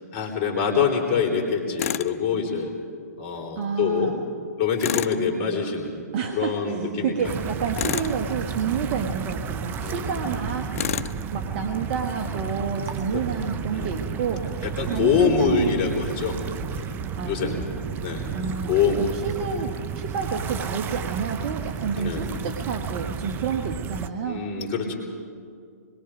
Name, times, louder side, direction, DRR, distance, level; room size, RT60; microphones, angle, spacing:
voice 1, 0.1-2.7 3.2-4.1 4.6-6.0 6.3-7.1 9.8-10.2 13.1-13.2 13.7-13.9 14.6-16.4 16.7-16.9 17.3-17.6 18.0-18.3 18.7-19.0 22.0-22.3 24.3-24.9, left 6 dB, 35° left, 1 dB, 4.3 m, -25 dB
Tools, 1.8-2.1 4.8-5.2 7.7-8.2 10.7-11.2, left 10 dB, 55° left, 0.7 m, -28 dB
voice 2, 3.5-4.2 6.1-10.7 11.3-15.7 17.2-17.7 18.3-18.7 19.1-24.4, right 6 dB, 45° right, 4 dB, 1.5 m, -29 dB
sound 1, 7.2-24.1, right 6 dB, 20° right, 0.7 m, -32 dB
26.5 x 22.0 x 5.2 m, 2.3 s
hypercardioid pair, 125°, 9 cm